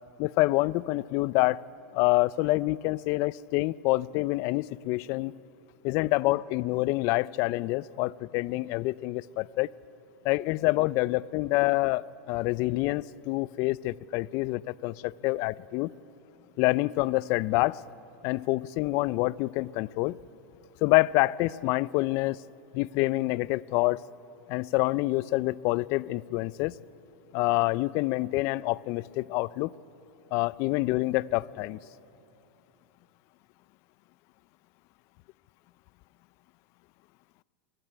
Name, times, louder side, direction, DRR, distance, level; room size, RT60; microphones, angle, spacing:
voice 1, 0.2-1.6 1.9-5.3 5.8-9.7 10.2-15.9 16.6-17.8 18.2-20.2 20.8-22.4 22.7-24.0 24.5-26.8 27.3-29.7 30.3-31.8, left 20 dB, 50° left, 20 dB, 0.5 m, -27 dB
29.0 x 12.5 x 9.6 m, 2.8 s
supercardioid pair, 125°, 6 cm